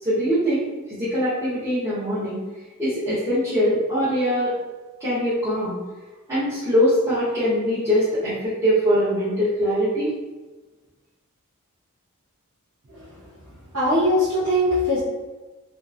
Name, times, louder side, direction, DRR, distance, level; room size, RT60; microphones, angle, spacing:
voice 1, 0.0-2.4 2.8-4.5 5.0-5.7 6.3-10.1, equal, 10° right, -14 dB, 0.8 m, -22 dB
voice 2, 13.7-15.0, equal, 65° right, -12 dB, 0.9 m, -21 dB
2.7 x 2.4 x 2.4 m, 1.2 s
head